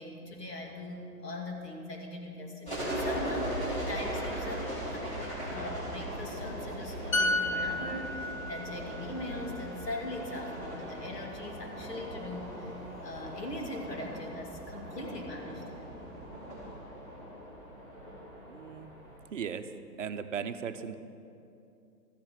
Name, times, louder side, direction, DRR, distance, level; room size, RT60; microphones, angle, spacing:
voice 1, 0.0-15.9, left 1 dB, 70° left, 1 dB, 2.7 m, -41 dB
sound 1, 2.6-19.2, equal, 10° left, 2.9 m, -39 dB
sound 2, 7.1-10.7 11.0-11.3, left 2 dB, 55° left, 0.9 m, -33 dB
sound 3, 8.7-16.8, right 2 dB, 10° right, 2.2 m, -56 dB
voice 2, 18.5-18.9 19.3-19.7 20.0-21.0, right 7 dB, 50° right, 9 dB, 0.7 m, -37 dB
13.5 x 7.9 x 7.4 m, 2.7 s
hypercardioid pair, 155°, 49 cm